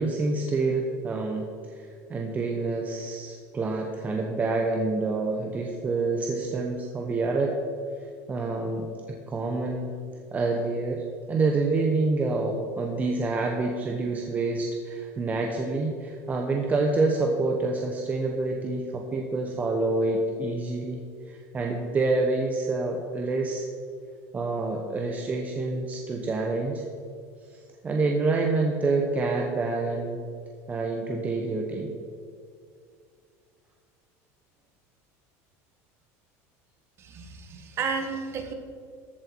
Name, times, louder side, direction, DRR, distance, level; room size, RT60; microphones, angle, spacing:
voice 1, 0.0-7.5 8.3-9.9 10.3-23.6 24.3-26.8 27.8-30.2 30.7-31.9, right 3 dB, 20° right, 1 dB, 1.0 m, -27 dB
voice 2, 37.0-38.5, right 5 dB, 35° right, 5 dB, 1.5 m, -32 dB
14.0 x 8.0 x 4.6 m, 2.2 s
cardioid pair, 145°, 8 cm